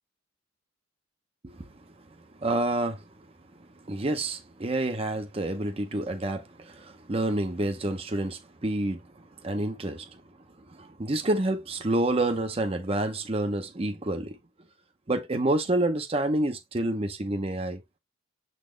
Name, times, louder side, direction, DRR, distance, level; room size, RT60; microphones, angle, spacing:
voice 1, 2.4-3.0 3.9-9.0 9.4-10.2 10.7-14.4 15.1-17.8, right 1 dB, 30° right, 0.7 m, -28 dB
7.3 x 4.1 x 3.2 m
head